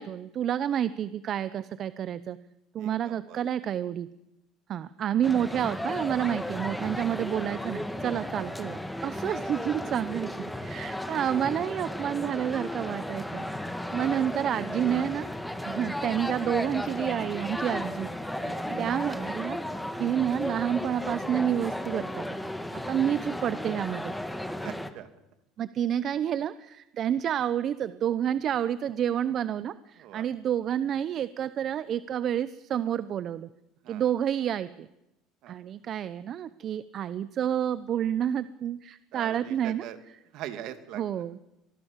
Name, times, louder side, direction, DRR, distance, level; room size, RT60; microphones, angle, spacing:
voice 1, 0.0-2.4 2.7-4.1 4.7-15.3 15.6-18.1 18.8-19.6 20.0-22.4 22.9-24.2 24.6-24.7 25.6-33.5 33.9-34.9 35.5-39.9 41.0-41.4, right 9 dB, 45° right, 15 dB, 0.8 m, -29 dB
voice 2, 2.8-3.4 14.0-14.5 18.4-18.8 24.6-25.1 30.0-30.3 33.8-34.1 35.4-35.6 39.1-40.0 40.3-41.2, right 12 dB, 65° right, 9 dB, 2.5 m, -43 dB
sound 1, 5.2-24.9, left 1 dB, 5° left, 1.9 m, -34 dB
24.5 x 20.0 x 7.4 m, 0.92 s
supercardioid pair, 100°, 0 cm